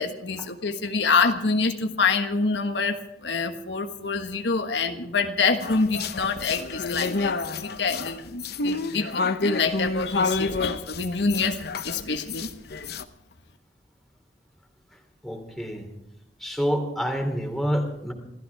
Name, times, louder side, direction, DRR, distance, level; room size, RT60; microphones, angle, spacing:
voice 1, 0.0-11.6 11.8-12.5, left 4 dB, 80° left, 6 dB, 1.4 m, -26 dB
sound 1, 5.6-13.0, left 3 dB, 65° left, 0.9 m, -29 dB
voice 2, 14.9-15.9 16.4-18.1, equal, ahead, 3 dB, 3.0 m, -28 dB
27.0 x 14.5 x 3.5 m, 0.87 s
head